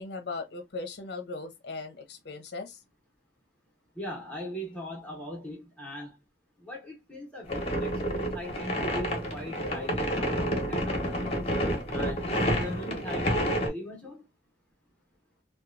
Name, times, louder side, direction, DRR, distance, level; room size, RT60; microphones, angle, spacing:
voice 1, 0.0-2.8, left 3 dB, 65° left, 0.6 m, -38 dB
voice 2, 4.0-6.2 6.6-11.4 11.9-14.2, equal, 5° left, 0.9 m, -40 dB
sound 1, 7.4-13.7, equal, 35° left, 0.9 m, -29 dB
2.9 x 2.3 x 2.4 m
head